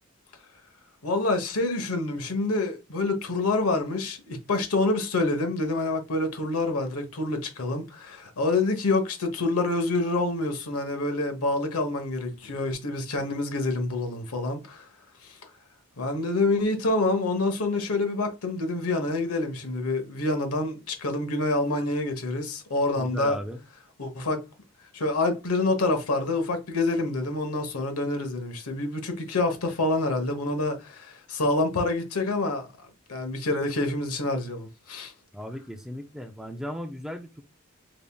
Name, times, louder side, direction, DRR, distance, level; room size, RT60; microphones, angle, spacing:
voice 1, 1.0-14.8 15.2-15.4 16.0-23.4 24.0-24.4 24.9-32.7 33.1-35.1, left 2 dB, 90° left, 1.1 m, -27 dB
voice 2, 22.9-23.6 35.3-37.4, equal, ahead, 0.4 m, -36 dB
5.0 x 3.5 x 2.3 m
head